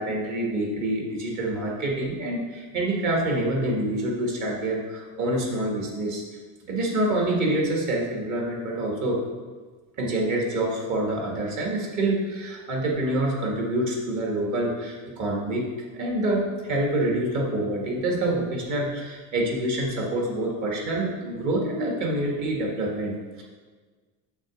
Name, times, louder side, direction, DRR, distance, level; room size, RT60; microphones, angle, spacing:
voice 1, 0.0-6.2 6.7-9.2 10.0-15.7 15.9-23.4, right 1 dB, 45° right, -1 dB, 1.6 m, -26 dB
6.5 x 3.9 x 6.2 m, 1.4 s
cardioid pair, 160°, 42 cm